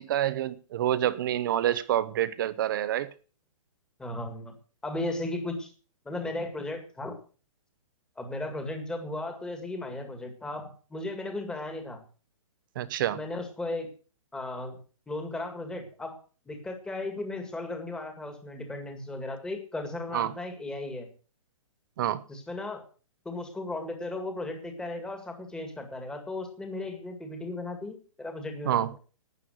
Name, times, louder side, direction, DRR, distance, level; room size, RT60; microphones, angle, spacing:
voice 1, 0.0-3.1 12.7-13.2 20.1-20.3 22.0-22.2 28.6-28.9, right 12 dB, 40° right, 0.9 m, -27 dB
voice 2, 4.0-4.5 4.8-5.7 6.0-7.2 8.2-12.0 13.1-13.9 14.3-14.8 15.1-16.2 16.5-21.1 22.3-22.8 23.3-29.0, left 2 dB, 5° left, 1.9 m, -36 dB
12.5 x 9.1 x 6.4 m
hypercardioid pair, 165°, 18 cm